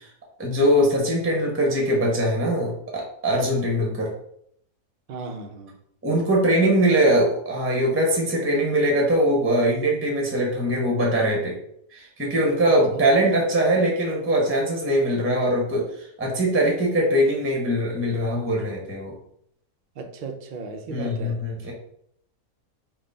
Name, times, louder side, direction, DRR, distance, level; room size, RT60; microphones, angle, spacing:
voice 1, 0.4-4.1 6.0-11.6 11.9-19.1 20.9-21.7, right 1 dB, 15° right, -1 dB, 0.5 m, -22 dB
voice 2, 5.1-5.7 20.0-21.4, right 4 dB, 85° right, 3 dB, 0.4 m, -35 dB
3.8 x 2.3 x 3.8 m, 0.71 s
omnidirectional pair, 1.6 m